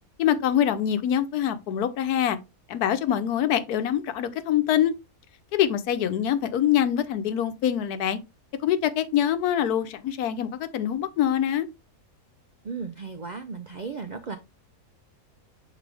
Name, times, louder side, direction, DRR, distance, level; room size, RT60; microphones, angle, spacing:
voice 1, 0.2-2.4 2.7-4.9 5.5-8.2 8.6-11.7, left 10 dB, 80° left, 1.2 m, -24 dB
voice 2, 12.6-14.4, right 5 dB, 85° right, 0.4 m, -35 dB
6.7 x 4.1 x 3.4 m
omnidirectional pair, 1.6 m